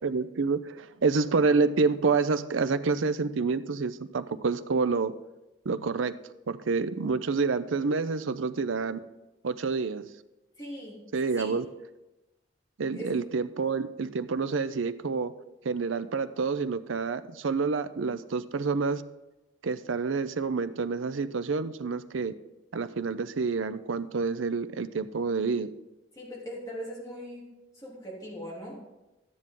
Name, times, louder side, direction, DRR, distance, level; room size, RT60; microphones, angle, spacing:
voice 1, 0.0-5.1 5.7-6.2 6.5-9.0 9.4-10.1 11.1-11.7 12.8-15.3 15.6-19.0 19.6-22.3 22.7-25.7, right 4 dB, 85° right, 13 dB, 0.6 m, -28 dB
voice 2, 10.6-11.6 12.9-13.2 26.1-27.5 27.7-28.8, equal, 15° left, -5 dB, 3.4 m, -40 dB
12.5 x 9.7 x 3.8 m, 0.99 s
head